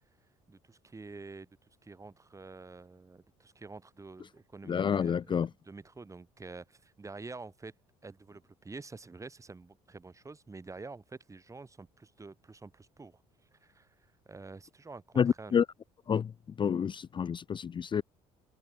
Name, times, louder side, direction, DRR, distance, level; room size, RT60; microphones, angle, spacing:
voice 1, 0.5-1.5 1.8-7.7 8.0-13.2 13.5-14.0 14.3-15.6, right 3 dB, 20° right, 7.7 m, -48 dB
voice 2, 4.7-5.5 15.2-15.6 16.1-16.3 16.6-18.0, left 7 dB, 35° left, 0.6 m, -28 dB
open air
supercardioid pair, 80°, 14 cm